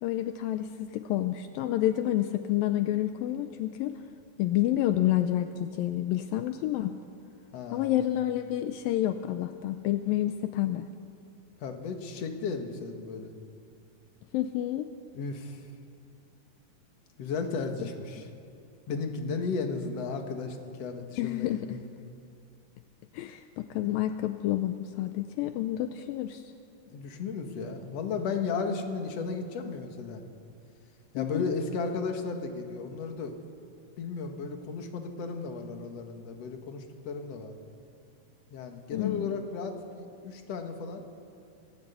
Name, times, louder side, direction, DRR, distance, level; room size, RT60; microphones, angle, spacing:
voice 1, 0.0-4.0 4.4-6.9 7.7-10.9 14.3-14.9 21.2-21.7 23.1-26.5 31.2-31.5 38.9-39.3, left 13 dB, 80° left, 9 dB, 2.4 m, -29 dB
voice 2, 7.5-8.0 11.6-13.3 15.1-15.6 17.2-18.3 18.9-21.8 26.9-30.2 31.1-33.3 34.0-37.6 38.5-41.0, left 4 dB, 50° left, 4 dB, 2.5 m, -34 dB
27.0 x 16.0 x 8.3 m, 2.5 s
omnidirectional pair, 4.3 m